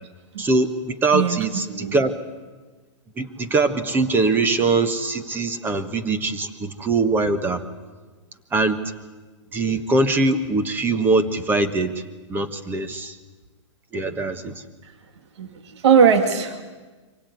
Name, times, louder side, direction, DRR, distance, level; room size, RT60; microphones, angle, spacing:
voice 1, 0.4-2.2 3.2-7.6 8.5-8.8 9.5-12.0 12.3-13.2 13.9-14.6, right 3 dB, 10° right, 9 dB, 1.3 m, -22 dB
voice 2, 1.1-2.0 14.8-14.9 15.4-16.6, right 6 dB, 60° right, 7 dB, 2.2 m, -20 dB
24.5 x 17.0 x 9.5 m, 1.3 s
hypercardioid pair, 145°, 16 cm